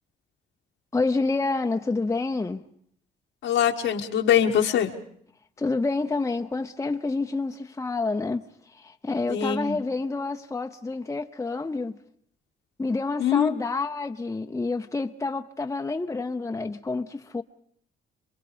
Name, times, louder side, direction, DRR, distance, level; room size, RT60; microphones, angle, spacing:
voice 1, 0.9-2.6 5.6-8.4 8.7-12.0 12.8-17.4, left 3 dB, 15° left, 0.8 m, -28 dB
voice 2, 3.4-4.9 9.3-9.8 13.2-13.5, left 9 dB, 80° left, 1.6 m, -23 dB
27.0 x 22.0 x 5.2 m
cardioid pair, 90°, 20 cm